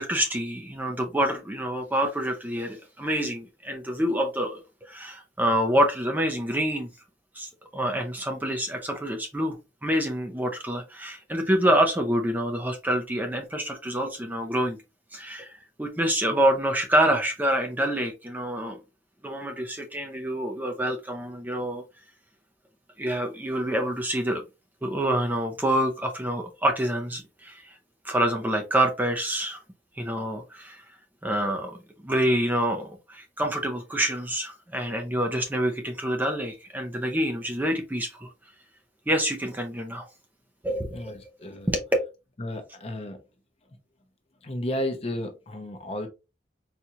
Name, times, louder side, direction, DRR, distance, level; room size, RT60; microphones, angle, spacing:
voice 1, 0.0-6.9 7.3-9.6 9.8-14.8 15.1-18.8 19.2-21.8 23.0-24.4 24.8-27.8 28.0-29.6 30.0-30.8 31.2-38.3 39.1-40.1 40.6-41.2 41.7-41.8, right 1 dB, 10° right, 0.5 m, -27 dB
voice 2, 40.9-41.7 42.4-43.2 44.4-46.1, left 1 dB, 30° left, 0.7 m, -33 dB
4.2 x 2.4 x 2.7 m
head